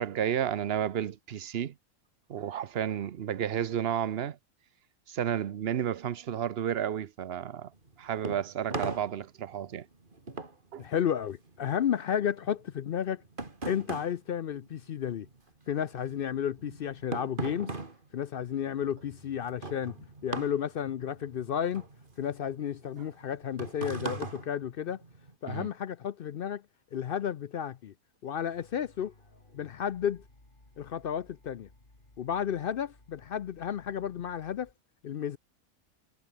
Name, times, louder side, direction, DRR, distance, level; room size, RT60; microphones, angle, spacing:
voice 1, 0.0-1.7 2.3-4.4 5.1-7.7 8.0-9.9 10.7-10.9 25.5-25.7, right 9 dB, 50° right, 0.9 m, -32 dB
sound 1, 7.7-15.4 15.7-25.3, right 3 dB, 35° right, 2.8 m, -40 dB
voice 2, 10.8-13.2 13.6-15.3 15.7-17.7 18.1-21.9 22.2-25.0 25.4-26.6 26.9-27.9 28.2-29.1 29.5-30.2 30.8-31.7 32.2-34.7 35.0-35.4, left 9 dB, 65° left, 0.5 m, -32 dB
sound 2, 28.4-34.7, left 2 dB, 35° left, 4.2 m, -60 dB
omnidirectional pair, 1.5 m